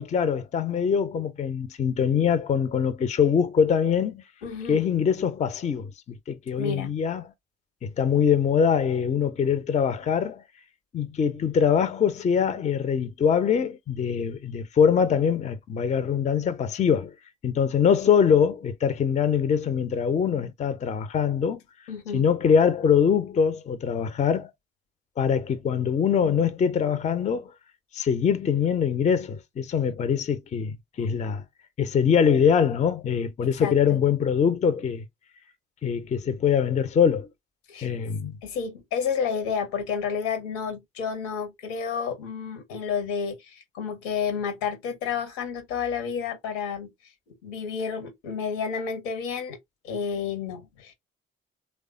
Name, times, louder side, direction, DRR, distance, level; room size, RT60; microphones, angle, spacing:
voice 1, 0.0-4.2 4.7-7.2 7.8-10.4 10.9-17.1 17.4-21.6 22.1-24.5 25.2-27.5 27.9-31.4 31.8-35.1 35.8-37.3 37.8-38.3, left 7 dB, 25° left, 0.4 m, -23 dB
voice 2, 4.4-4.8 6.6-6.9 21.9-22.2 33.6-34.0 37.7-37.9 38.4-46.9 47.3-49.6 49.8-50.9, left 6 dB, 70° left, 0.8 m, -30 dB
3.2 x 2.1 x 2.5 m
figure-of-eight pair, 45°, 31 cm